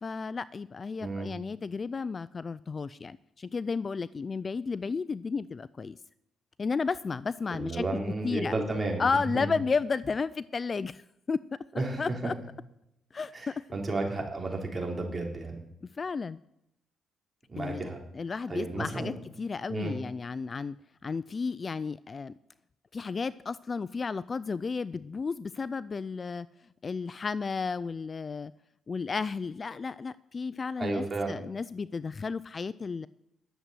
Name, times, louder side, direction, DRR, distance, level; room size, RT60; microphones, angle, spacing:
voice 1, 0.0-6.0 6.6-7.8 8.2-8.5 9.0-11.0 11.3-11.4 12.0-12.3 13.1-13.5 15.8-16.4 17.6-17.9 18.1-20.8 21.0-22.3 22.9-26.5 26.8-28.5 28.9-33.1, left 5 dB, 35° left, 18 dB, 0.3 m, -33 dB
voice 2, 1.0-1.3 7.5-9.5 11.8-12.3 13.3-15.6 17.5-18.0 18.5-19.1 19.7-19.9 30.8-31.3, right 2 dB, 25° right, 0 dB, 3.5 m, -32 dB
11.0 x 7.4 x 8.1 m, 0.80 s
cardioid pair, 90°, 0 cm